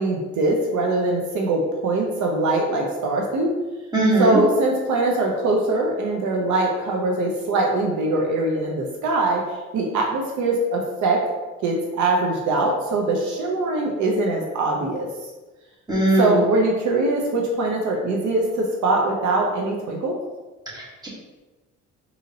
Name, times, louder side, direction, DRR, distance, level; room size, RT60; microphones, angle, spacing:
voice 1, 0.0-3.5 4.2-9.4 9.7-11.2 11.6-15.1 16.1-20.1, right 2 dB, 75° right, 0 dB, 0.6 m, -22 dB
voice 2, 3.9-4.4 15.9-16.4 20.7-21.1, right 2 dB, 15° right, -6 dB, 1.3 m, -20 dB
3.8 x 2.8 x 2.7 m, 1.2 s
cardioid pair, 90°, 30 cm